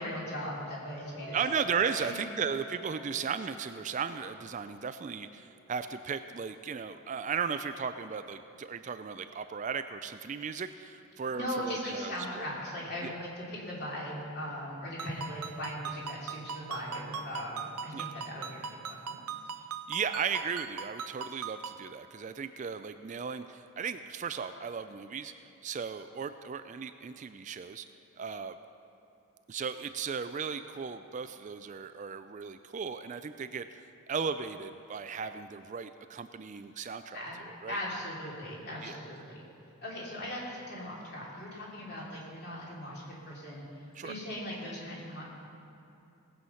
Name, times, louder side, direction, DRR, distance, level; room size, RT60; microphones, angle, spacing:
voice 1, 0.0-1.5 1.9-2.1 11.3-17.6 17.8-19.2 37.1-37.4 37.7-39.4 39.8-43.6 44.0-45.2, equal, 45° left, -4 dB, 2.9 m, -39 dB
Piano, 1.2-7.3, right 2 dB, 85° left, 1.5 m, -49 dB
voice 2, 1.3-12.5 13.0-13.2 17.9-18.0 19.9-27.9 28.2-28.6 29.5-37.8 38.8-38.9 43.9-44.2, right 6 dB, 35° right, 10 dB, 0.3 m, -36 dB
Ringtone, 15.0-21.9, right 6 dB, 90° right, 0.6 m, -41 dB
18.0 x 7.8 x 5.7 m, 2.8 s
head